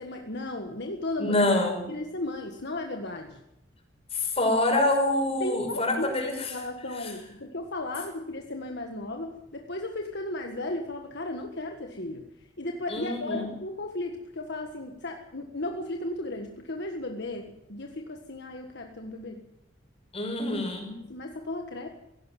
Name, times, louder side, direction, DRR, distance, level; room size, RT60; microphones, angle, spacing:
voice 1, 0.0-1.5 1.9-3.4 5.4-6.2 6.5-12.3 12.6-19.5 21.1-21.9, left 2 dB, 60° left, 4 dB, 1.6 m, -35 dB
voice 2, 1.2-1.8 4.1-6.5 7.0-7.1 12.9-13.4 20.1-20.9, left 2 dB, 30° left, 3 dB, 5.6 m, -26 dB
17.0 x 16.5 x 9.3 m, 0.86 s
head